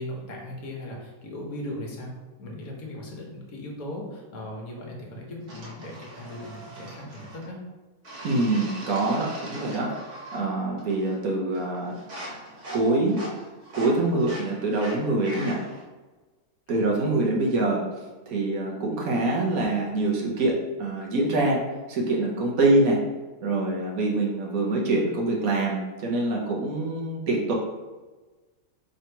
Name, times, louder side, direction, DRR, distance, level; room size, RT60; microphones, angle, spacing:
voice 1, 0.0-2.1 2.4-7.6 16.7-16.8, left 1 dB, 75° left, -1 dB, 1.5 m, -38 dB
sound 1, 5.5-7.5 8.0-10.5 10.8-11.2 11.5-15.8, right 1 dB, 55° right, 1.5 m, -41 dB
voice 2, 8.2-9.9 10.3-12.0 12.7-13.2 13.7-15.6 16.7-17.8 18.3-21.6 21.9-23.0 23.4-27.5, right 2 dB, 75° right, -2 dB, 1.4 m, -25 dB
4.0 x 2.9 x 4.5 m, 1.2 s
omnidirectional pair, 1.5 m